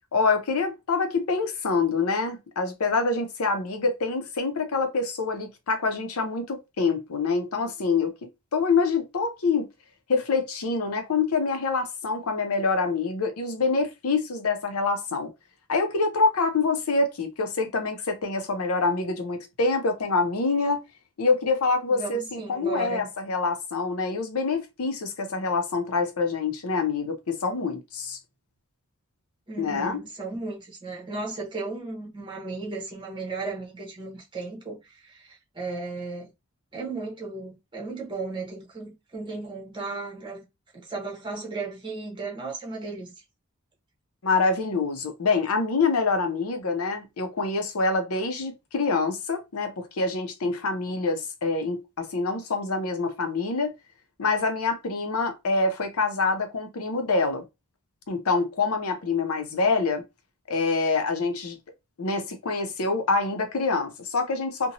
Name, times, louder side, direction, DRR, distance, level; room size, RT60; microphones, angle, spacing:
voice 1, 0.1-8.1 8.5-9.7 10.1-15.3 15.7-20.8 21.2-28.2 29.6-30.0 44.2-53.7 54.2-57.4 58.1-60.0 60.5-61.6 62.0-64.7, left 4 dB, 80° left, 0.6 m, -26 dB
voice 2, 21.9-23.1 29.5-36.3 36.7-40.4 40.7-43.1, right 3 dB, 20° right, 1.0 m, -35 dB
2.9 x 2.2 x 2.7 m
head